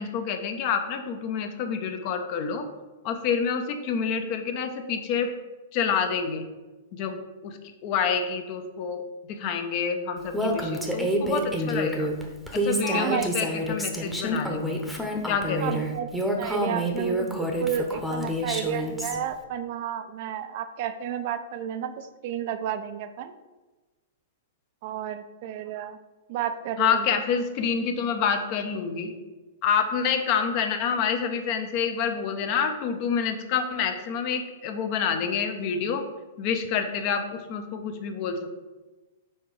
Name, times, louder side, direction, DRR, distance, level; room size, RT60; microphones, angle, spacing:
voice 1, 0.0-2.6 3.0-5.3 5.7-6.4 6.9-9.0 9.3-12.1 12.5-14.8 15.2-15.9 26.8-29.2 29.6-36.0 36.4-38.5, left 6 dB, 45° left, 6 dB, 0.8 m, -28 dB
Female speech woman speaking, 10.3-19.2, equal, ahead, 0.9 m, -28 dB
voice 2, 12.8-13.3 15.6-23.3 24.8-26.0 26.3-27.2, right 9 dB, 55° right, 9 dB, 0.5 m, -32 dB
4.5 x 4.4 x 4.9 m, 1.2 s
hypercardioid pair, 115°, 0 cm